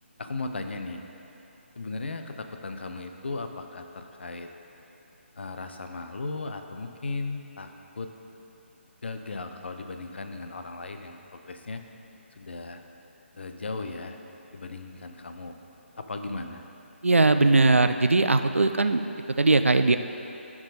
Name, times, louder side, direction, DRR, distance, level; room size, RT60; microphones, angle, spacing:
voice 1, 0.2-1.0 1.8-4.5 5.4-8.1 9.0-11.8 12.3-12.8 13.4-14.2 14.5-15.5 16.0-16.6, left 3 dB, 60° left, 6 dB, 0.7 m, -36 dB
voice 2, 17.0-19.0 19.4-20.0, right 3 dB, 80° right, 9 dB, 0.4 m, -20 dB
14.0 x 4.7 x 4.1 m, 3.0 s
figure-of-eight pair, 145°, 7 cm